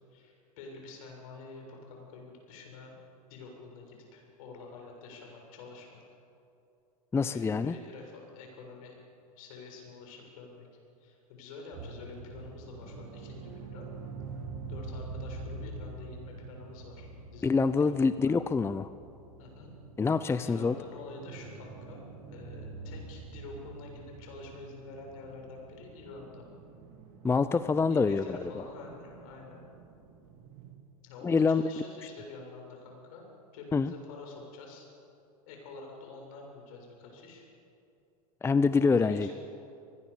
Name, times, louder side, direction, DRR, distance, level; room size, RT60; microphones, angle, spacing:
voice 1, 0.1-6.0 7.3-9.0 9.4-10.7 11.0-13.9 14.7-17.5 17.8-18.4 19.4-19.7 20.4-26.4 27.9-29.6 31.0-33.3 33.5-34.9 35.5-37.4 38.8-39.3, left 3 dB, 65° left, 1 dB, 7.3 m, -47 dB
voice 2, 7.1-7.7 17.4-18.9 20.0-20.7 27.2-28.5 31.2-31.7 33.7-33.9 38.4-39.3, left 4 dB, 15° left, 13 dB, 0.6 m, -26 dB
sound 1, 11.7-30.7, right 3 dB, 50° right, 4.1 m, -46 dB
24.5 x 20.5 x 7.0 m, 2.7 s
hypercardioid pair, 100°, 19 cm